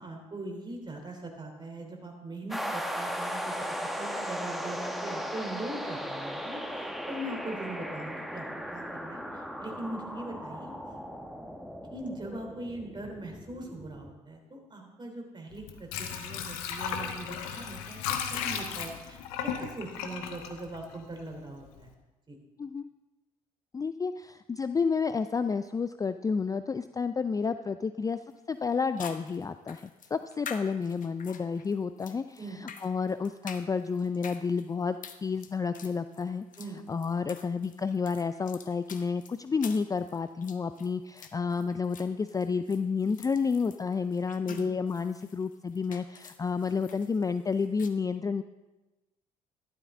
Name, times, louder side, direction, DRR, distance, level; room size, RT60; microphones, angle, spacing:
voice 1, 0.0-10.7 11.9-21.9 22.3-22.4 32.4-32.6 36.6-36.8 44.4-44.7, right 1 dB, 25° right, 2 dB, 3.3 m, -41 dB
sound 1, 2.5-14.1, equal, ahead, 1.2 m, -37 dB
Water / Sink (filling or washing), 15.5-21.4 21.8-21.9, left 7 dB, 75° left, 1.0 m, -35 dB
voice 2, 23.7-28.2 28.5-35.0 35.2-36.4 36.9-48.4, left 5 dB, 20° left, 11 dB, 0.4 m, -30 dB
sound 2, 28.3-28.4 29.0-47.9, left 7 dB, 45° left, 1.0 m, -48 dB
12.5 x 11.5 x 3.7 m, 1.1 s
hypercardioid pair, 50°, 18 cm